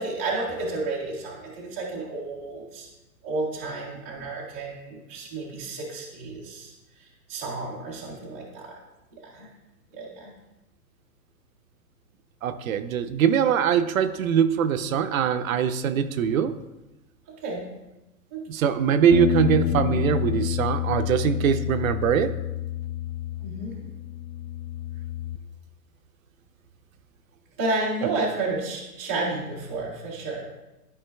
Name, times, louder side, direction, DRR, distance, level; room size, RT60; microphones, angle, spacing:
voice 1, 0.0-2.9 3.2-6.7 7.3-8.8 9.3-9.5 9.9-10.3 17.4-17.7 18.3-18.4 23.4-23.8 27.6-30.4, right 2 dB, 10° right, -7 dB, 0.4 m, -31 dB
voice 2, 12.4-16.5 18.5-22.3, right 8 dB, 60° right, 10 dB, 0.6 m, -22 dB
sound 1, 19.1-25.4, left 12 dB, 60° left, 0.5 m, -28 dB
12.0 x 5.0 x 2.2 m, 1.0 s
hypercardioid pair, 155°, 47 cm